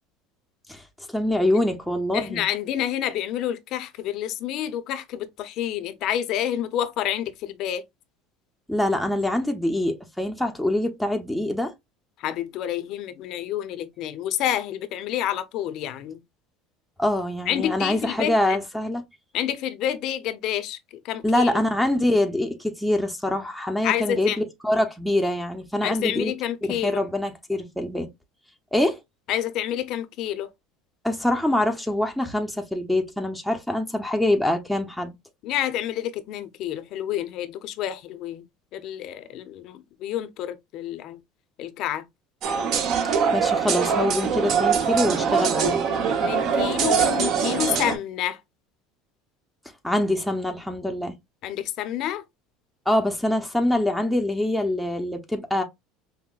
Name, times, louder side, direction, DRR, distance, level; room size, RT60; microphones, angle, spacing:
voice 1, 1.1-2.4 8.7-11.7 17.0-19.0 21.2-26.3 26.7-28.1 28.7-29.0 31.0-35.1 43.3-45.8 49.8-51.2 52.9-55.6, left 1 dB, ahead, 0.6 m, -24 dB
voice 2, 2.1-7.8 12.2-16.2 17.5-18.6 19.3-21.5 23.8-24.4 25.8-27.0 29.3-30.5 35.4-38.4 38.7-41.2 41.6-42.0 46.2-48.4 51.4-52.2, left 11 dB, 55° left, 0.6 m, -28 dB
sound 1, 42.4-48.0, right 6 dB, 50° right, 0.8 m, -23 dB
5.5 x 2.1 x 2.4 m
supercardioid pair, 125°, 0 cm